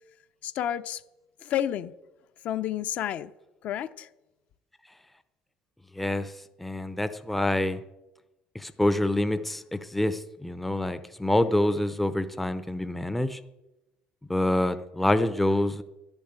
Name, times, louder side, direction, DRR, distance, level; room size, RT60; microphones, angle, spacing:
voice 1, 0.4-1.0 1.4-1.9 2.4-3.3 3.6-4.1, left 11 dB, 50° left, 12 dB, 0.6 m, -30 dB
voice 2, 6.0-6.3 6.6-7.8 8.5-13.4 14.3-15.8, left 1 dB, 5° left, 11 dB, 0.6 m, -26 dB
12.5 x 11.5 x 8.8 m, 0.98 s
cardioid pair, 175°, 3 cm